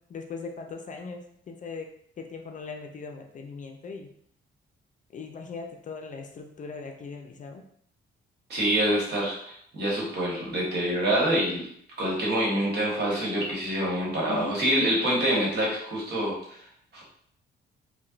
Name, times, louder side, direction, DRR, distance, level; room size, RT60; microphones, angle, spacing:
voice 1, 0.1-1.9 2.2-4.1 5.1-7.6 14.3-14.6, left 4 dB, 40° left, 4 dB, 0.4 m, -39 dB
voice 2, 8.5-11.7 12.0-16.6 16.9-17.0, right 1 dB, 55° right, -4 dB, 1.4 m, -26 dB
4.1 x 2.2 x 2.4 m, 0.66 s
cardioid pair, 90°, 20 cm